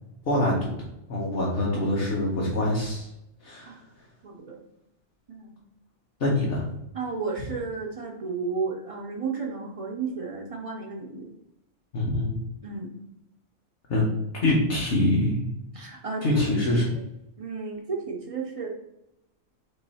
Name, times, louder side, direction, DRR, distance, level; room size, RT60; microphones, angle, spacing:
voice 1, 0.3-0.7 1.1-3.1 3.4-3.8 6.2-6.7 11.9-12.4 13.9-14.1 14.4-15.4 16.2-16.8, left 1 dB, 55° left, -4 dB, 1.0 m, -24 dB
voice 2, 4.2-4.6 5.3-5.6 6.9-11.3 12.6-12.9 15.7-16.4 17.4-18.7, right 4 dB, 55° right, 0 dB, 0.4 m, -32 dB
3.8 x 3.1 x 4.0 m, 0.84 s
omnidirectional pair, 1.3 m